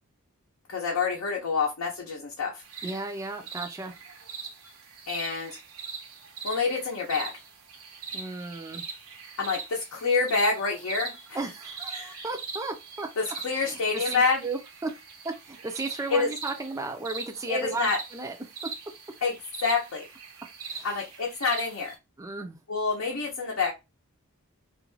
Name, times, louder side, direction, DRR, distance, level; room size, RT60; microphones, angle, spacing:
voice 1, 0.7-2.6 5.1-5.6 6.4-7.3 9.4-11.4 11.9-12.2 13.2-14.4 16.1-16.3 17.5-18.0 19.2-19.3 19.6-20.0 20.8-21.9 22.7-23.7, left 4 dB, 75° left, 0.7 m, -27 dB
sound 1, 2.6-22.0, right 5 dB, 85° right, 0.7 m, -41 dB
voice 2, 2.8-3.9 8.1-8.8 11.3-13.1 13.5-14.9 15.2-18.4 20.7-21.0 22.2-22.6, right 3 dB, 15° right, 0.3 m, -35 dB
2.4 x 2.2 x 3.1 m
head